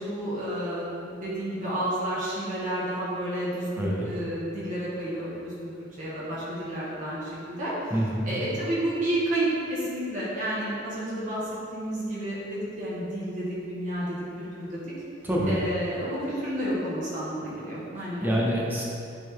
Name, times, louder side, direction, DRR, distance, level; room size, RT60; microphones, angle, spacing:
voice 1, 0.0-5.7 6.0-7.9 8.2-14.8 15.5-18.4, right 1 dB, 45° right, -8 dB, 1.5 m, -31 dB
voice 2, 7.9-8.3 15.2-15.6 18.2-18.8, equal, 10° right, -5 dB, 1.1 m, -26 dB
9.3 x 4.1 x 3.6 m, 2.6 s
head